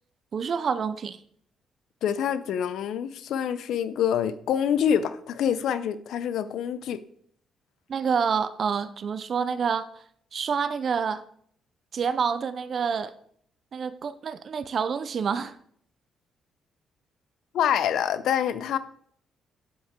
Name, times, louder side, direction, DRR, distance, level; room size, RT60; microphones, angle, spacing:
voice 1, 0.3-1.2 7.9-9.9 10.3-11.2 11.9-13.1 13.7-15.5, right 6 dB, 50° right, 0.5 m, -27 dB
voice 2, 2.0-7.0 17.5-18.8, left 9 dB, 75° left, 0.6 m, -26 dB
8.1 x 8.0 x 3.7 m
cardioid pair, 90°, 0 cm